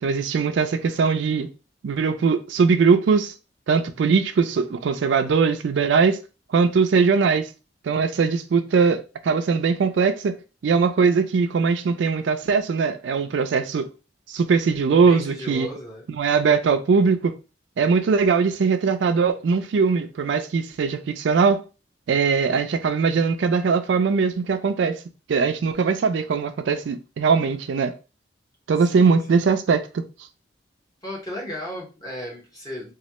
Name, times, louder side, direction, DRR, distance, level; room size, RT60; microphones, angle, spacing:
voice 1, 0.0-1.5 1.8-3.3 3.7-6.2 6.5-7.5 7.8-10.3 10.6-13.9 14.3-15.7 16.2-17.3 17.8-21.6 22.1-25.0 25.3-27.9 28.7-30.0, right 5 dB, 80° right, 0.4 m, -20 dB
voice 2, 15.0-16.0 17.8-18.1 28.8-29.4 31.0-32.9, equal, 20° left, 1.1 m, -35 dB
3.1 x 2.3 x 2.9 m
head